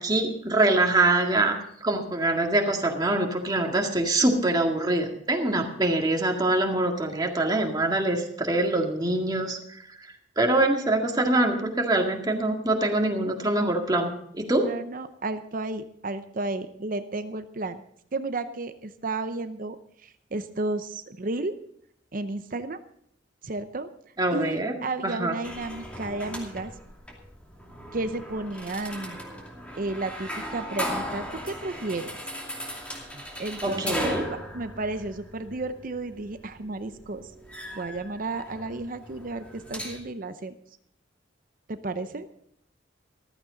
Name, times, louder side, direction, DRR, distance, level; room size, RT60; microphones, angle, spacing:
voice 1, 0.0-10.0 10.4-14.7 24.2-24.7 25.0-25.3 33.6-34.3, right 2 dB, 20° right, 2 dB, 1.9 m, -24 dB
voice 2, 14.7-17.8 18.1-21.6 22.1-22.8 23.4-23.9 24.3-26.7 27.9-29.2 29.8-32.2 33.1-37.3 37.7-40.5 41.7-42.3, right 2 dB, 45° right, 10 dB, 0.7 m, -33 dB
sound 1, 25.4-40.0, equal, 5° left, 2.5 m, -37 dB
14.5 x 14.0 x 4.0 m, 0.68 s
head